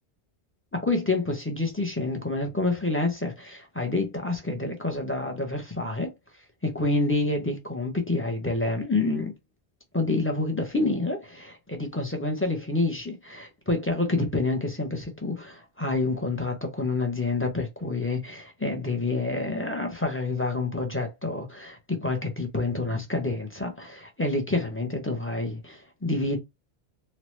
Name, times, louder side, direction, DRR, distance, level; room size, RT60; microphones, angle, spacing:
voice 1, 0.7-6.1 6.6-9.3 9.9-26.4, left 2 dB, 15° left, 0.4 m, -28 dB
2.9 x 2.1 x 3.1 m
omnidirectional pair, 1.1 m